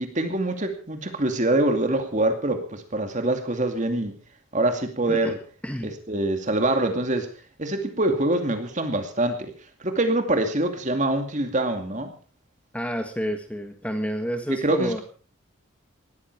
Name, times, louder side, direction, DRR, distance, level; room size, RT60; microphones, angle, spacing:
voice 1, 0.0-4.1 4.5-5.4 5.8-7.3 7.6-9.5 9.8-12.1 14.5-15.0, right 1 dB, 35° right, 6 dB, 2.4 m, -24 dB
voice 2, 5.6-5.9 12.7-15.0, equal, 5° left, 6 dB, 1.7 m, -29 dB
19.5 x 14.5 x 4.7 m, 0.39 s
head